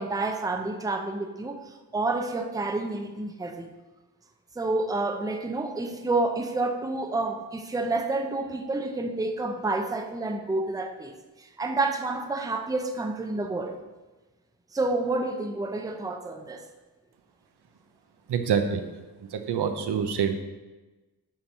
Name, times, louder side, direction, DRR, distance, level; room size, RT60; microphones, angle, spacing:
voice 1, 0.0-3.7 4.6-13.7 14.7-16.7, right 2 dB, 10° right, 4 dB, 0.6 m, -29 dB
voice 2, 18.3-18.8 19.3-20.3, right 7 dB, 80° right, 7 dB, 0.8 m, -26 dB
7.4 x 4.6 x 5.4 m, 1.2 s
wide cardioid pair, 125°, 40 cm